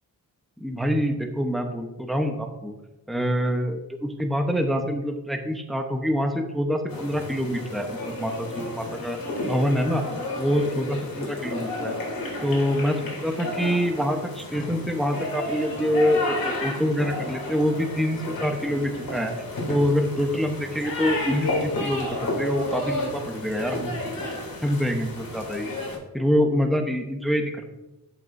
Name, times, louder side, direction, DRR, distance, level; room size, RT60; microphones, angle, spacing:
voice 1, 0.6-2.7 3.1-9.2 9.5-10.0 10.4-11.9 12.4-19.3 19.7-23.9 24.2-24.3 24.6-25.7 26.1-27.6, equal, ahead, 3 dB, 1.0 m, -25 dB
sound 1, 6.9-26.0, left 2 dB, 65° left, 3.2 m, -32 dB
13.5 x 6.1 x 2.7 m, 1.0 s
wide cardioid pair, 100°, 36 cm